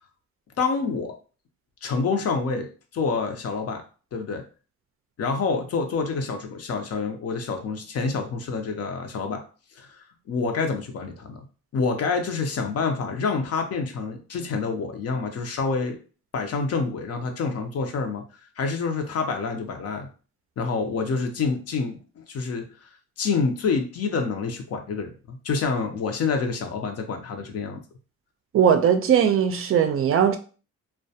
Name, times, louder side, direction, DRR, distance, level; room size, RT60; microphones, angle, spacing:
voice 1, 0.6-1.1 1.8-2.7 2.9-3.8 4.1-4.4 5.2-9.4 9.8-11.5 11.7-16.0 16.3-18.2 18.6-20.1 20.6-22.9 23.2-27.8, left 4 dB, 55° left, 0.6 m, -27 dB
voice 2, 28.5-30.4, right 8 dB, 50° right, 0.4 m, -19 dB
2.2 x 2.2 x 2.7 m
cardioid pair, 90°, 30 cm